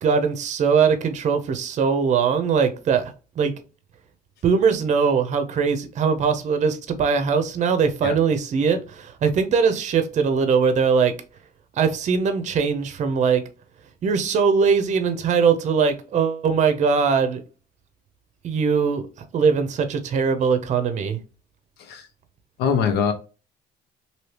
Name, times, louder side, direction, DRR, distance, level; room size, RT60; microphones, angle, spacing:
voice 1, 0.0-3.5 4.4-11.2 11.8-13.4 14.0-17.4 18.4-19.1 19.3-21.2, right 6 dB, 45° right, 0.6 m, -21 dB
voice 2, 22.6-23.1, left 6 dB, 75° left, 0.8 m, -22 dB
3.2 x 2.8 x 2.8 m
cardioid pair, 110°, 17 cm